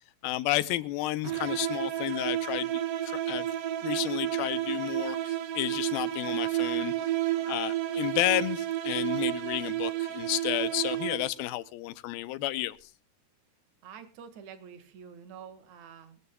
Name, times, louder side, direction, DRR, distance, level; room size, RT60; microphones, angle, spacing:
voice 1, 0.2-3.5 3.8-6.9 7.5-12.8, left 16 dB, 85° left, 2.6 m, -31 dB
sound 1, 1.2-11.5, right 13 dB, 80° right, 1.3 m, -31 dB
voice 2, 13.8-16.2, right 7 dB, 55° right, 2.8 m, -47 dB
22.5 x 13.5 x 2.2 m
omnidirectional pair, 4.2 m